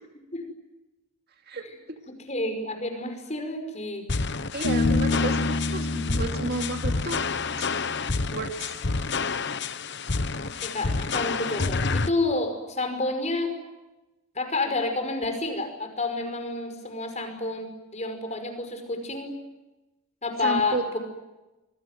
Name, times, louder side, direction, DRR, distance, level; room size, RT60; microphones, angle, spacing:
voice 1, 1.5-2.0 4.5-7.2 7.6-7.7 8.3-8.8 20.4-20.9, right 3 dB, 45° right, 5 dB, 2.5 m, -32 dB
voice 2, 2.1-4.1 5.1-5.3 10.6-13.5 14.4-19.4 20.2-21.0, left 2 dB, 30° left, 7 dB, 5.3 m, -29 dB
sound 1, 4.1-12.1, left 4 dB, 50° left, 1.1 m, -29 dB
Bass guitar, 4.6-8.1, left 2 dB, 75° left, 3.5 m, -28 dB
26.0 x 24.0 x 9.4 m, 1.1 s
head